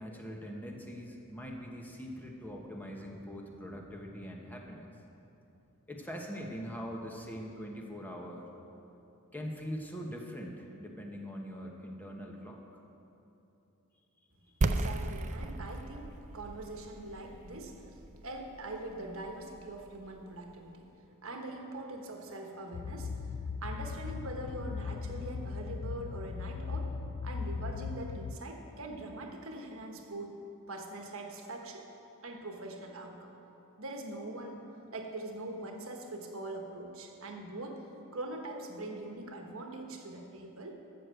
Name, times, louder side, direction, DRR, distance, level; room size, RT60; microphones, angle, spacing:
voice 1, 0.0-4.9 5.9-8.4 9.3-12.6 14.4-14.5, equal, 10° left, 0 dB, 1.1 m, -42 dB
sound 1, 14.6-20.3, right 2 dB, 35° right, 0.4 m, -36 dB
voice 2, 14.6-16.1 16.3-17.8 18.2-20.9 21.2-23.2 23.6-26.9 27.2-30.4 30.7-31.9 32.2-33.3 33.8-34.6 34.9-37.8 38.1-40.8, right 2 dB, 65° right, 3 dB, 1.3 m, -42 dB
sound 2, 22.7-28.4, left 5 dB, 85° left, 0.5 m, -38 dB
13.0 x 6.7 x 7.8 m, 2.9 s
head